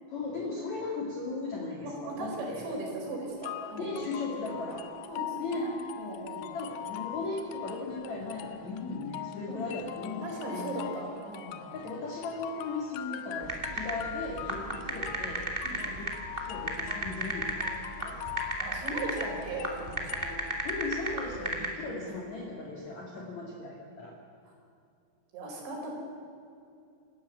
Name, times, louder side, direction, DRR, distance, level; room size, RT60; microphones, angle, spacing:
voice 1, 0.1-2.7 3.8-4.9 5.4-5.7 6.5-10.7 11.7-15.5 15.8-16.1 16.4-18.2 20.6-24.1, left 3 dB, 45° left, -1 dB, 3.1 m, -37 dB
voice 2, 1.8-4.3 5.1-6.6 9.5-9.6 10.2-11.9 14.7-14.8 15.6-15.8 18.6-20.4 21.9-22.0 22.4-22.5 25.3-25.9, right 2 dB, 90° right, 0 dB, 7.0 m, -38 dB
sound 1, 3.4-21.4, left 11 dB, 85° left, 1.9 m, -42 dB
sound 2, 13.4-21.7, right 2 dB, 20° right, 1.6 m, -33 dB
27.5 x 13.5 x 8.2 m, 2.5 s
omnidirectional pair, 5.1 m